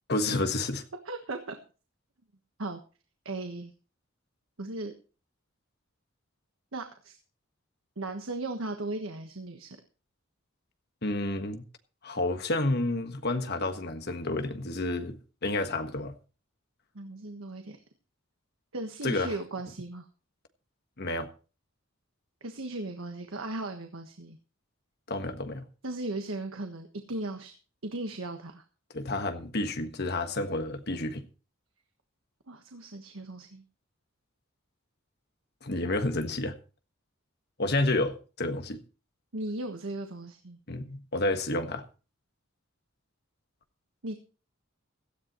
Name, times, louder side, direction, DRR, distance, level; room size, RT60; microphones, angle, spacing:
voice 1, 0.1-0.8 11.0-11.6 12.0-16.1 19.0-19.4 21.0-21.3 25.1-25.6 28.9-31.2 35.6-36.6 37.6-38.8 40.7-41.8, left 2 dB, 50° left, 1.5 m, -30 dB
voice 2, 1.0-1.6 2.6-2.8 3.2-3.7 4.6-4.9 6.7-7.2 8.0-9.8 16.9-17.8 18.7-20.1 22.4-24.4 25.8-27.5 27.8-28.6 32.5-33.6 39.3-40.6 44.0-44.2, right 2 dB, 75° right, 1.4 m, -37 dB
17.0 x 13.0 x 3.1 m
head